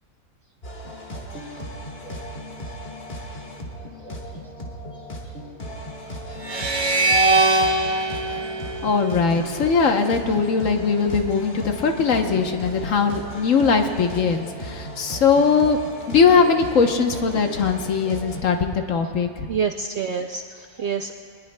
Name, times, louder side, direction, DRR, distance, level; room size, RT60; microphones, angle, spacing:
sound 1, 0.6-18.4, equal, 40° left, 1.9 m, -36 dB
sound 2, 6.4-9.7, right 2 dB, 20° right, 0.8 m, -22 dB
voice 1, 8.8-15.8 16.1-19.5, left 5 dB, 60° left, 5 dB, 1.2 m, -20 dB
voice 2, 19.5-21.1, right 6 dB, 65° right, 5 dB, 0.6 m, -27 dB
22.0 x 20.5 x 2.2 m, 2.1 s
omnidirectional pair, 1.6 m